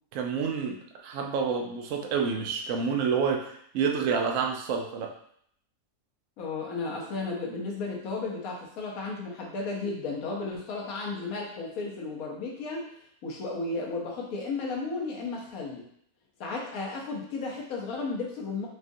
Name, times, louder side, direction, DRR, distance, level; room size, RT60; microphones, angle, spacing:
voice 1, 0.1-5.1, right 6 dB, 65° right, 2 dB, 0.9 m, -28 dB
voice 2, 6.4-12.9 13.2-15.9 16.4-18.7, left 3 dB, 65° left, -2 dB, 1.3 m, -34 dB
6.0 x 2.5 x 2.6 m, 0.68 s
omnidirectional pair, 1.6 m